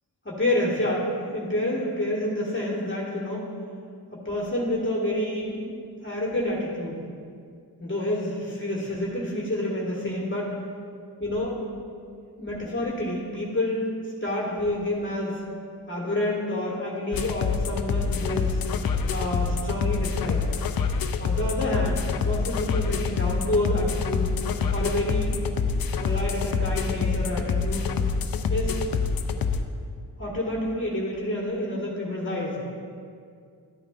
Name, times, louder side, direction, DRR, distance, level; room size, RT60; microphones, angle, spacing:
voice 1, 0.2-1.1 1.3-3.5 4.1-5.6 6.0-7.0 7.8-10.5 11.2-11.6 12.4-13.9 14.2-15.4 15.9-18.6 19.1-20.5 21.2-24.2 24.7-25.4 26.0-27.9 28.5-28.8 30.2-32.6, left 1 dB, 30° left, -4 dB, 1.7 m, -28 dB
sound 1, 17.1-29.6, left 5 dB, 60° left, 0.6 m, -26 dB
12.0 x 8.8 x 2.5 m, 2.3 s
cardioid pair, 80°, 41 cm